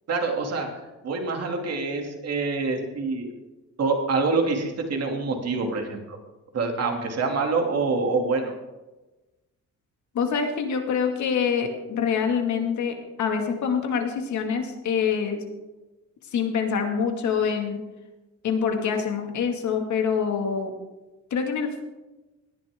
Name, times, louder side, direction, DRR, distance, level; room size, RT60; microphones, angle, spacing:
voice 1, 0.1-0.7 1.0-3.3 3.8-6.2 6.5-8.5, right 3 dB, 55° right, 3 dB, 2.8 m, -26 dB
voice 2, 10.1-15.4 16.3-17.8 18.4-20.7 21.3-21.8, left 6 dB, 70° left, 4 dB, 2.3 m, -25 dB
18.0 x 10.5 x 3.8 m, 1.1 s
cardioid pair, 90°, 30 cm